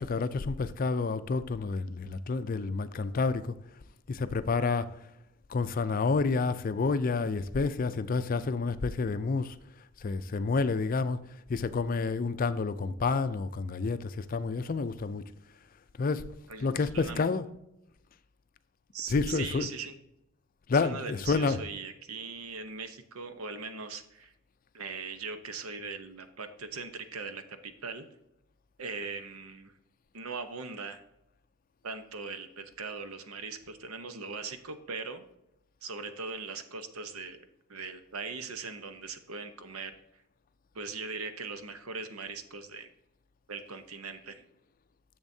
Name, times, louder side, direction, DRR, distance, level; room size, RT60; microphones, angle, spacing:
voice 1, 0.0-3.5 4.1-4.9 5.5-9.6 10.0-11.2 11.5-15.2 16.0-16.3 16.6-17.5 19.1-19.7 20.7-21.6, left 4 dB, 40° left, 0.4 m, -29 dB
voice 2, 16.5-17.2 18.9-19.9 20.7-24.3 24.7-28.1 28.8-29.7 30.1-31.0 31.8-35.2 35.8-37.4 37.7-39.9 40.7-42.9 43.5-44.4, right 4 dB, 85° right, 0.8 m, -40 dB
10.5 x 7.2 x 2.7 m
head